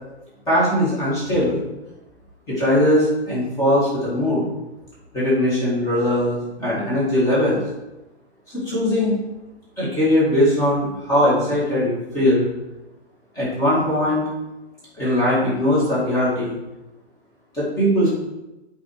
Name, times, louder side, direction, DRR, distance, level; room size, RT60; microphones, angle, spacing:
voice 1, 0.5-1.6 2.5-4.5 5.1-7.6 8.5-9.2 9.8-12.5 13.4-14.3 15.0-16.6 17.5-18.1, left 1 dB, 10° left, -8 dB, 2.1 m, -20 dB
8.2 x 4.7 x 4.7 m, 1.0 s
hypercardioid pair, 165°, 34 cm